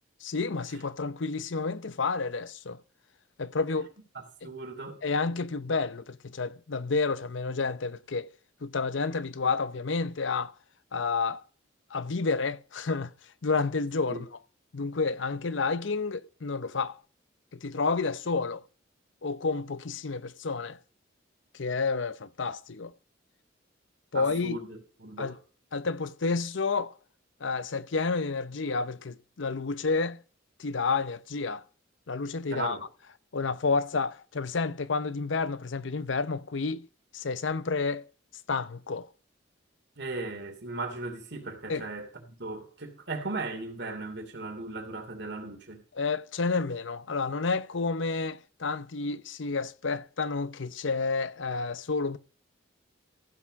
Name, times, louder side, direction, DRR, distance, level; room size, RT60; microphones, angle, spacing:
voice 1, 0.2-2.8 3.4-3.9 5.0-8.3 8.6-10.5 10.9-11.4 11.9-13.1 13.4-14.3 14.7-16.9 17.5-18.6 19.2-20.8 21.5-22.9 24.1-24.6 25.2-25.4 25.7-26.9 27.4-30.2 30.6-31.6 32.1-32.8 33.3-36.9 37.1-38.1 38.5-39.1 41.7-41.9 46.0-52.2, left 4 dB, 70° left, 0.7 m, -30 dB
voice 2, 4.1-5.0 14.1-14.2 24.1-25.3 32.5-32.8 40.0-45.8, right 3 dB, 60° right, 2.8 m, -37 dB
15.5 x 6.0 x 5.2 m
head